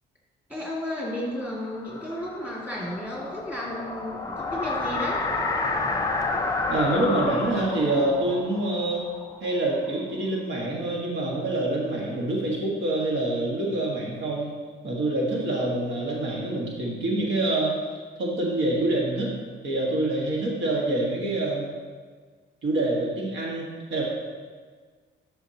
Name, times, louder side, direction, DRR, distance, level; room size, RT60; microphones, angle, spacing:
voice 1, 0.5-5.2, left 1 dB, 5° right, -5 dB, 2.2 m, -33 dB
sound 1, 1.3-10.0, left 3 dB, 15° left, 0.6 m, -30 dB
voice 2, 6.7-9.1 9.4-14.5 14.8-19.3 19.6-21.7 22.6-24.0, right 2 dB, 90° right, -3 dB, 1.7 m, -26 dB
10.5 x 5.7 x 2.9 m, 1.6 s
cardioid pair, 130°, 20 cm